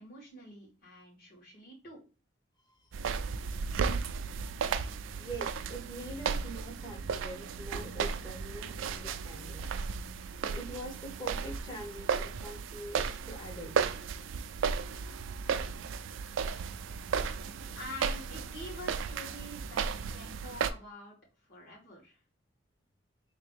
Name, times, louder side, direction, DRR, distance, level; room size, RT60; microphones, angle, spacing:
voice 1, 0.0-2.0 17.7-21.1 21.5-22.2, left 1 dB, 50° left, -5 dB, 2.4 m, -47 dB
sound 1, 2.9-20.7, right 6 dB, 90° right, 0.4 m, -35 dB
voice 2, 5.2-9.6 10.5-13.7, right 1 dB, 25° left, 2 dB, 1.0 m, -44 dB
3.8 x 2.8 x 3.4 m, 0.33 s
head